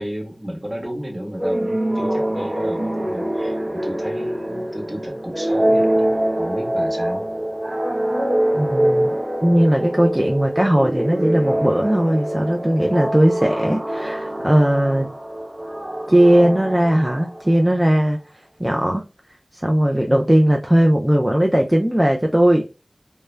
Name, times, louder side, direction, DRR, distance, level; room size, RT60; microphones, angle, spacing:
voice 1, 0.0-7.3, equal, 30° right, 1.0 m, -32 dB
sound 1, 1.4-17.8, right 1 dB, 55° right, 0.6 m, -24 dB
voice 2, 8.5-9.1 9.4-15.1 16.1-18.2 18.6-19.0 19.5-22.6, right 1 dB, 15° right, 0.3 m, -18 dB
2.2 x 2.1 x 3.1 m
wide cardioid pair, 50°, 0 cm